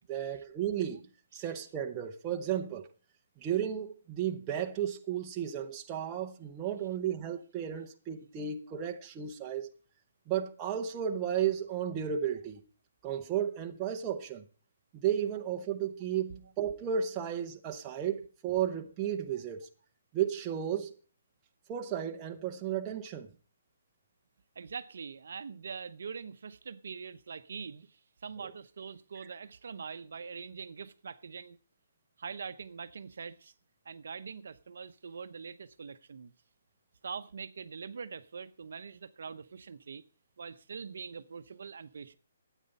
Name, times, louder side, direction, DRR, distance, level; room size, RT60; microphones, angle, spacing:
voice 1, 0.1-1.0 1.3-2.9 3.4-9.7 10.3-12.6 13.0-14.5 14.9-19.7 20.1-20.9 21.7-23.3 28.4-28.5, right 9 dB, 15° right, 0.8 m, -33 dB
voice 2, 24.6-31.6 32.2-33.5 33.8-36.3 37.0-40.0 40.4-42.2, right 6 dB, 60° right, 0.8 m, -43 dB
12.5 x 9.2 x 5.4 m
hypercardioid pair, 175°, 0 cm